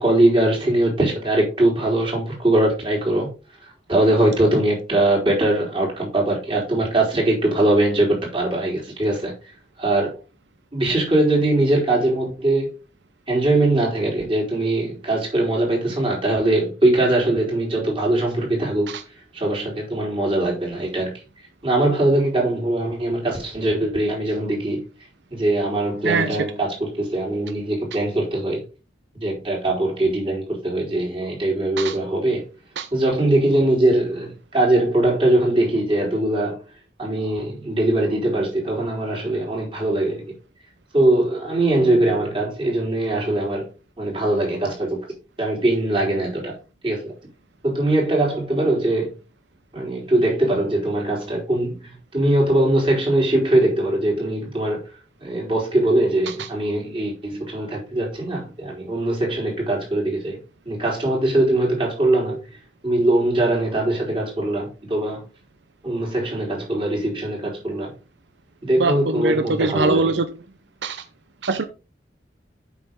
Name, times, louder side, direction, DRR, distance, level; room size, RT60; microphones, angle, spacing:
voice 1, 0.0-3.3 3.6-9.3 9.8-10.2 10.7-12.7 13.3-19.0 19.3-21.1 21.6-24.8 25.3-28.6 29.1-32.4 32.9-36.6 37.0-40.2 40.9-43.7 44.0-45.1 45.4-46.5 46.8-47.1 47.6-49.1 49.7-54.9 55.2-60.4 60.7-62.4 62.8-65.3 65.8-67.9 68.6-70.1, right 1 dB, 30° right, 4.0 m, -21 dB
voice 2, 26.0-26.4 31.8-32.0 32.8-32.9 56.3-56.5 68.7-70.3 70.8-71.0 71.4-71.6, right 3 dB, 85° right, 0.7 m, -22 dB
8.1 x 6.0 x 3.8 m
head